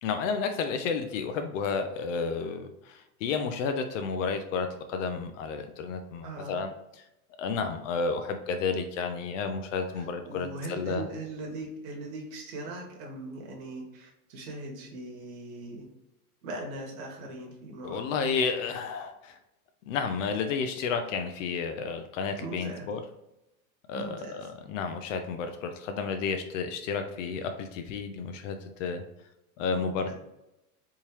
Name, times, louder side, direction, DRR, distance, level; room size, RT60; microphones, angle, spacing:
voice 1, 0.0-6.7 7.4-11.0 17.8-19.4 19.9-23.0 23.9-29.0 29.6-30.1, left 5 dB, 55° left, 7 dB, 0.5 m, -31 dB
voice 2, 6.2-6.6 9.9-15.9 16.4-18.0 22.4-22.9 23.9-24.5 29.7-30.1, right 2 dB, 60° right, 0 dB, 1.5 m, -40 dB
3.5 x 2.8 x 2.9 m, 0.90 s
hypercardioid pair, 130°, 46 cm